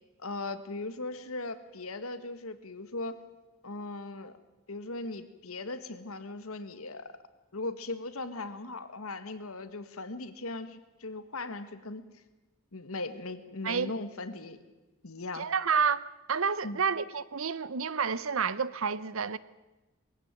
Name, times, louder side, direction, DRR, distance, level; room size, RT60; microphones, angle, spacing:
voice 1, 0.2-3.2 3.6-4.3 4.7-7.1 7.5-12.1 12.7-14.6 15.0-15.5 16.6-16.9, left 2 dB, 75° left, 1.7 m, -38 dB
voice 2, 15.3-19.4, right 6 dB, 70° right, 0.8 m, -29 dB
22.0 x 16.0 x 9.1 m
head